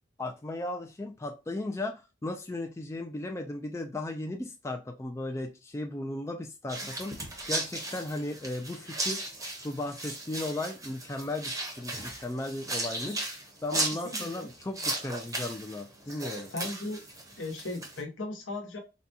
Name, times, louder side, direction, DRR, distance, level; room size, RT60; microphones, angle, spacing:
voice 1, 0.2-9.3 9.6-13.2 13.6-16.5, left 2 dB, 15° left, 4 dB, 0.3 m, -36 dB
sound 1, 6.7-18.0, right 2 dB, 15° right, 0.8 m, -36 dB
voice 2, 13.7-14.5 16.5-17.0 17.4-18.8, left 2 dB, 75° left, 3 dB, 1.0 m, -37 dB
3.9 x 2.2 x 2.7 m, 0.27 s
head